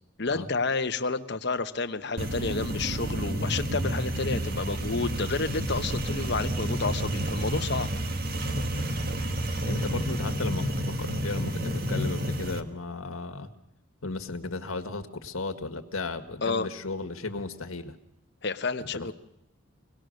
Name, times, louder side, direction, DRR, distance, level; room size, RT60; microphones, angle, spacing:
voice 1, 0.2-7.9 16.4-16.7 18.4-19.1, left 4 dB, 50° left, 8 dB, 1.0 m, -30 dB
sound 1, 2.2-12.6, right 1 dB, 45° right, 1.3 m, -30 dB
voice 2, 9.7-10.7 11.0-13.5 14.0-18.0 18.8-19.1, left 3 dB, 80° left, 7 dB, 1.7 m, -35 dB
25.0 x 18.5 x 6.5 m, 0.81 s
head